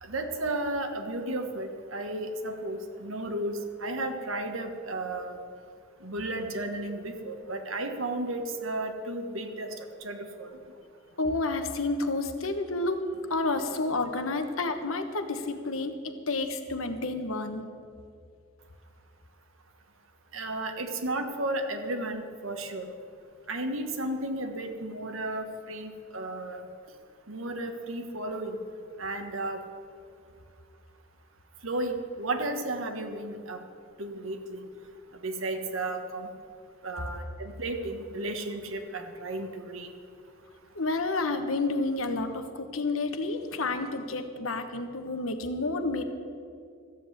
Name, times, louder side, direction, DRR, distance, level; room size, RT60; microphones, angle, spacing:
voice 1, 0.0-5.4 6.0-10.5 20.3-22.9 23.5-26.7 27.3-28.6 29.0-29.6 31.6-33.6 34.0-34.6 35.2-36.3 36.8-39.9, right 2 dB, 75° right, 5 dB, 1.4 m, -33 dB
voice 2, 11.2-13.0 13.3-17.6 40.7-46.0, left 3 dB, 80° left, 7 dB, 1.1 m, -30 dB
14.0 x 7.9 x 8.1 m, 2.4 s
head